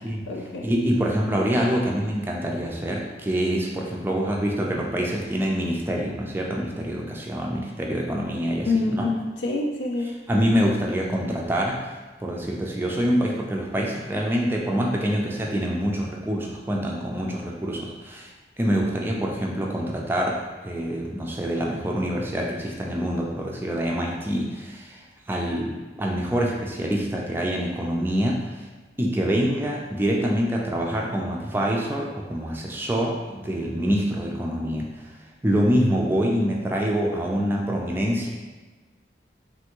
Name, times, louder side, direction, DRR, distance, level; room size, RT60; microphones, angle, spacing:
voice 1, 0.0-0.7 8.7-10.1, left 3 dB, 85° left, 0 dB, 0.4 m, -27 dB
voice 2, 0.6-9.1 10.3-11.9 12.2-18.3 18.6-25.0 25.3-28.7 29.0-34.9 35.4-38.3, equal, 10° right, -1 dB, 0.3 m, -25 dB
3.4 x 2.5 x 2.9 m, 1.3 s
head